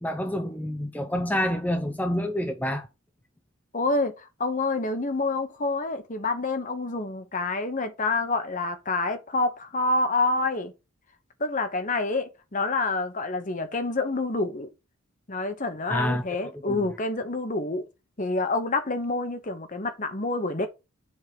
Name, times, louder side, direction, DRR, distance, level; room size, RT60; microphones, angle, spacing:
voice 1, 0.0-2.9 15.9-16.8, left 1 dB, 5° left, 0.5 m, -28 dB
voice 2, 3.7-10.7 11.4-14.7 15.3-17.9 18.2-20.7, left 3 dB, 35° left, 1.0 m, -27 dB
7.5 x 3.7 x 4.8 m
head